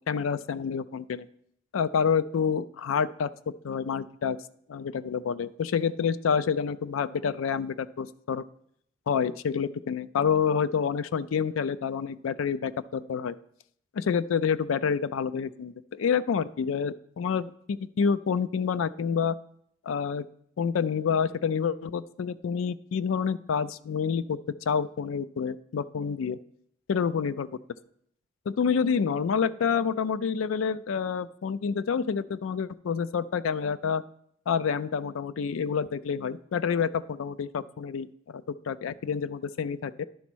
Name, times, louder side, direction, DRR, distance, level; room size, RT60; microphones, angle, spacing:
voice 1, 0.1-1.3 1.7-4.4 4.7-8.4 9.1-13.3 13.9-19.3 19.9-20.3 20.6-24.4 24.7-26.4 26.9-27.5 28.5-34.0 34.5-40.1, left 6 dB, 85° left, 16 dB, 0.4 m, -28 dB
11.0 x 4.1 x 6.1 m, 0.68 s
head